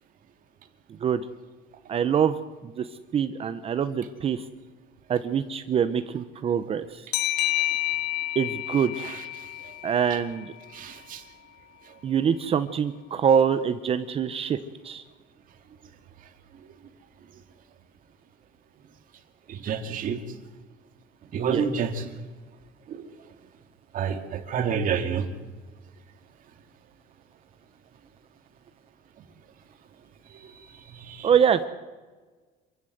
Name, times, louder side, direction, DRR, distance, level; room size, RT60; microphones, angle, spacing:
voice 1, 1.9-2.4 2.6-2.9 3.1-4.4 5.1-7.1 8.4-9.0 9.8-10.5 12.0-14.6 14.8-15.0 21.3-21.7 31.2-31.7, right 7 dB, 30° right, 11 dB, 0.8 m, -24 dB
sound 1, 7.1-10.5, left 16 dB, 65° left, 1.2 m, -29 dB
voice 2, 10.7-11.2 19.5-20.2 21.3-22.0 22.9-23.0 23.9-25.3 31.1-31.3, right 7 dB, 45° right, 6 dB, 2.2 m, -28 dB
26.5 x 15.5 x 8.0 m, 1.3 s
cardioid pair, 165°, 19 cm